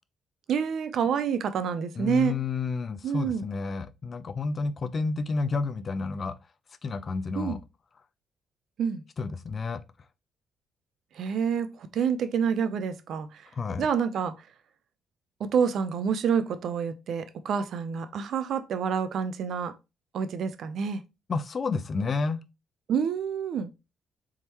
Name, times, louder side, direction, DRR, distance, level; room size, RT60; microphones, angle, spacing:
voice 1, 0.5-2.3 3.0-3.5 7.4-7.6 8.8-9.0 11.2-13.4 13.8-14.3 15.4-19.7 20.1-21.0 22.9-23.7, right 7 dB, 65° right, 0.5 m, -28 dB
voice 2, 2.0-6.4 6.8-7.6 9.2-9.8 13.5-13.9 21.3-22.4, left 4 dB, 40° left, 0.4 m, -30 dB
4.2 x 3.6 x 2.9 m
cardioid pair, 90°, 0 cm